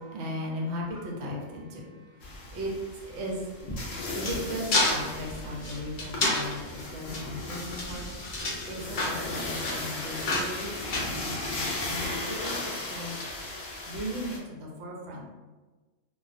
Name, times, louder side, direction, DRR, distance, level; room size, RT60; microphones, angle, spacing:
voice 1, 0.0-8.1 8.6-13.2 13.9-15.2, equal, 65° right, -1 dB, 0.9 m, -37 dB
sound 1, 2.2-14.4, left 2 dB, 90° left, 1.0 m, -37 dB
sound 2, 3.6-11.9, left 2 dB, 55° left, 0.6 m, -31 dB
2.3 x 2.1 x 2.5 m, 1.3 s
omnidirectional pair, 1.3 m